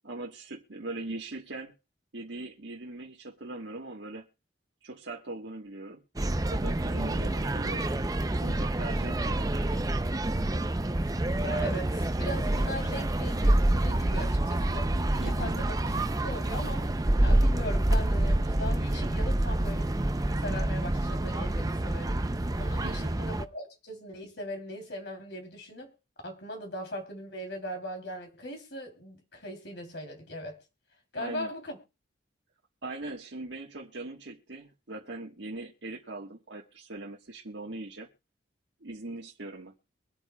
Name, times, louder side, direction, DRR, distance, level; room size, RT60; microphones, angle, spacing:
voice 1, 0.0-1.7 2.1-4.3 4.8-6.0 6.4-7.9 8.4-9.8 15.2-15.6 22.8-23.1 31.2-31.5 32.8-38.1 38.8-39.7, right 2 dB, 70° right, 1.3 m, -40 dB
sound 1, 6.2-23.5, right 1 dB, 20° right, 0.5 m, -27 dB
voice 2, 11.4-14.9 15.2-15.8 16.2-16.9 17.2-19.9 20.4-22.2 22.6-25.9 26.2-30.6 31.1-31.8, equal, 65° left, 3.1 m, -39 dB
24.0 x 8.3 x 2.3 m
head